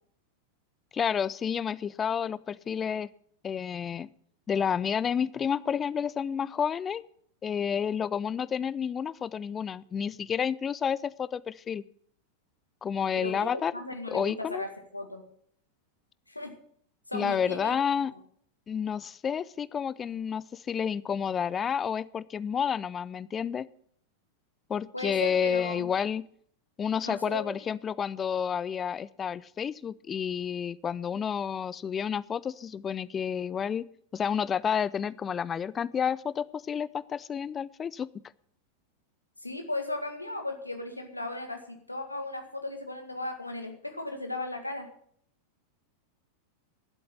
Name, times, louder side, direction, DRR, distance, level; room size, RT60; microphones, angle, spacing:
voice 1, 0.9-3.1 3.4-4.1 4.5-7.0 7.4-11.8 12.8-13.7 14.1-14.6 17.1-18.1 18.7-23.7 24.7-26.2 26.8-33.9 34.1-38.1, left 7 dB, 20° left, 19 dB, 0.4 m, -30 dB
voice 2, 13.1-15.2 16.3-16.5 17.1-17.8 24.9-25.9 27.0-27.6 39.4-44.9, left 2 dB, 85° left, 5 dB, 1.9 m, -36 dB
11.5 x 7.8 x 7.6 m, 0.64 s
figure-of-eight pair, 90°, 0 cm